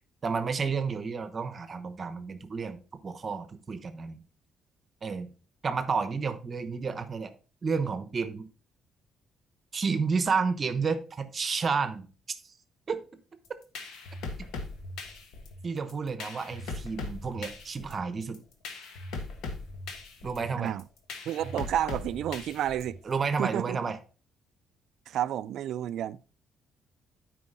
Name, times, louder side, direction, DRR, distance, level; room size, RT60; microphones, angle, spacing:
voice 1, 0.2-4.2 5.0-5.3 5.6-7.3 7.6-8.5 9.7-12.5 12.9-13.0 15.6-18.4 20.2-20.7 23.0-24.0, right 5 dB, 40° right, 1.0 m, -31 dB
sound 1, 13.4-23.1, left 3 dB, 90° left, 1.3 m, -40 dB
voice 2, 21.3-23.0 23.4-23.8 25.1-26.2, right 11 dB, 75° right, 0.3 m, -30 dB
9.5 x 4.9 x 3.8 m
cardioid pair, 90°, 0 cm